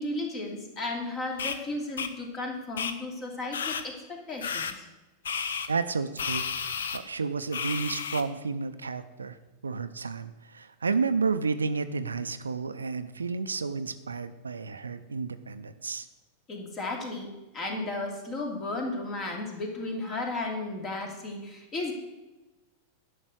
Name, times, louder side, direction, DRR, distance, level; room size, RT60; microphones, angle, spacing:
voice 1, 0.0-4.9 16.5-21.9, left 2 dB, 30° left, 2 dB, 2.7 m, -34 dB
sound 1, 1.4-1.6 2.0-2.1 2.8-2.9 3.5-3.8 4.4-4.7 5.2-5.7 6.2-7.0 7.5-8.2, left 6 dB, 65° left, 0.8 m, -32 dB
voice 2, 5.7-6.7 6.9-9.4 9.6-16.1, right 4 dB, 75° right, 11 dB, 0.6 m, -31 dB
11.0 x 6.0 x 8.0 m, 1.1 s
figure-of-eight pair, 90°, 0 cm